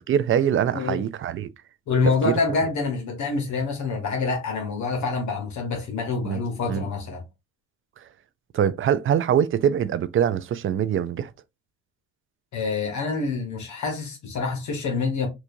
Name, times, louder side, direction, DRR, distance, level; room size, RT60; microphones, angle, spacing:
voice 1, 0.1-1.5 2.2-2.3 6.3-6.4 6.7-6.9 8.5-11.3, right 9 dB, 45° right, 0.4 m, -23 dB
voice 2, 1.9-7.2 12.5-15.3, left 4 dB, 70° left, 1.2 m, -26 dB
4.5 x 2.4 x 2.6 m
cardioid pair, 90°, 30 cm